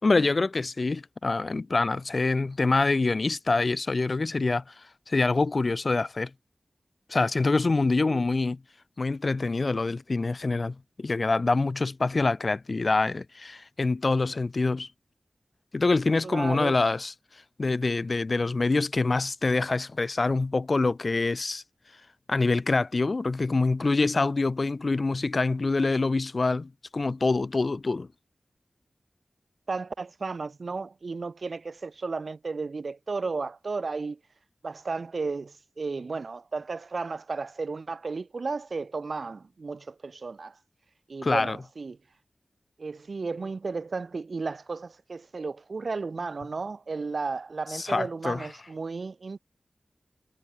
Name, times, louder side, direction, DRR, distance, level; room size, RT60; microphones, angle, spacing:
voice 1, 0.0-4.6 5.1-6.3 7.1-8.6 9.0-14.9 15.7-17.1 17.6-21.6 22.3-28.1 41.2-41.6 47.7-48.5, left 3 dB, 50° left, 5.2 m, -25 dB
voice 2, 16.2-16.8 29.7-34.2 34.6-40.5 41.1-42.0 42.8-49.4, right 4 dB, 70° right, 2.0 m, -34 dB
wide cardioid pair, 65°, 0 cm